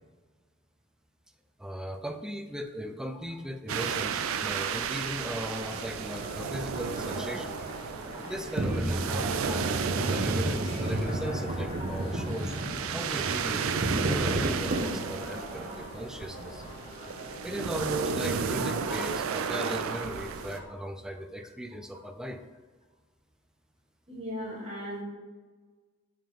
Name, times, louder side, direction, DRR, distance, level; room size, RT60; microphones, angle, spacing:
voice 1, 1.6-7.6 8.3-12.5 12.9-16.7 17.4-22.4, equal, 5° right, 7 dB, 0.3 m, -37 dB
sound 1, 3.7-20.6, right 6 dB, 90° right, 0.4 m, -33 dB
sound 2, 5.1-20.6, equal, 25° left, 1.3 m, -43 dB
sound 3, 8.6-15.3, right 1 dB, 50° right, 0.6 m, -31 dB
voice 2, 24.1-25.0, equal, 30° right, -3 dB, 1.6 m, -39 dB
5.4 x 3.6 x 5.1 m, 1.4 s
head